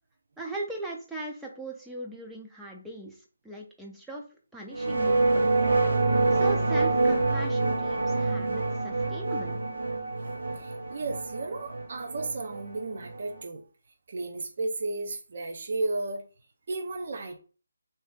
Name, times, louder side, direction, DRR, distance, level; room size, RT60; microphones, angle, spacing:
voice 1, 0.4-4.2 4.5-5.6 6.1-9.6, right 2 dB, 5° right, 0.5 m, -39 dB
sound 1, 4.7-13.4, right 3 dB, 85° right, 1.1 m, -26 dB
voice 2, 10.2-13.6 14.1-16.3 16.7-17.4, right 3 dB, 45° right, 0.6 m, -34 dB
3.2 x 2.8 x 3.6 m
figure-of-eight pair, 170°, 0 cm